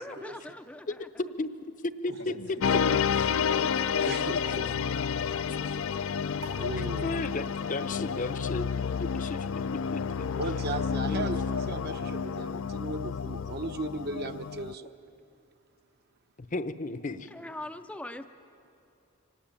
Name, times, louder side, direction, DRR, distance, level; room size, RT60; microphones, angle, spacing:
voice 1, 0.0-1.1 17.3-18.3, left 1 dB, 5° left, 6 dB, 0.5 m, -41 dB
voice 2, 0.9-2.3 2.7-2.8 4.0-4.6 7.0-9.5 9.7-10.0 11.1-11.3 16.4-17.3, left 2 dB, 40° left, 12 dB, 0.8 m, -34 dB
voice 3, 2.2-3.4 3.9-6.2, left 3 dB, 85° left, 6 dB, 1.9 m, -47 dB
sound 1, 2.6-14.7, left 6 dB, 65° left, 0.5 m, -30 dB
voice 4, 4.1-4.6 6.5-7.2 10.3-14.9, right 2 dB, 50° right, 8 dB, 1.0 m, -36 dB
sound 2, 6.4-13.2, right 3 dB, 75° right, 4.9 m, -54 dB
24.5 x 18.5 x 9.0 m, 2.7 s
head